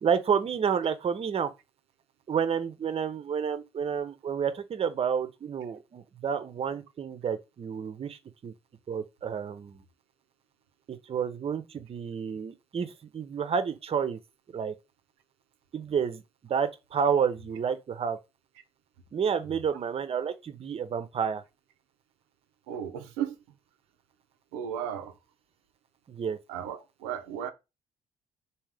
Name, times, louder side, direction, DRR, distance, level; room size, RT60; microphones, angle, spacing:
voice 1, 0.0-1.5 2.3-8.5 8.9-9.8 10.9-14.2 14.5-14.7 15.7-16.2 16.5-18.2 19.1-21.4 26.1-26.4, right 7 dB, 45° right, 0.6 m, -30 dB
voice 2, 22.7-23.4 24.5-25.1 26.5-27.5, right 9 dB, 85° right, 0.5 m, -35 dB
3.6 x 2.8 x 3.3 m
hypercardioid pair, 50°, 14 cm